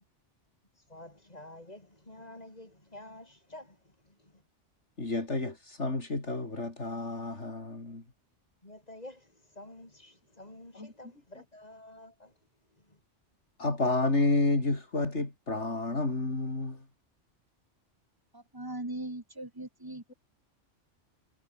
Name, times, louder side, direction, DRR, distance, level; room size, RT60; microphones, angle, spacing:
voice 1, 0.9-4.4 8.6-12.3 12.9-13.0, left 1 dB, 35° left, 3.7 m, -50 dB
voice 2, 5.0-8.0 10.7-10.9 13.6-16.8, left 2 dB, 65° left, 4.5 m, -30 dB
voice 3, 18.3-20.1, right 2 dB, 15° right, 1.9 m, -39 dB
omnidirectional pair, 1.3 m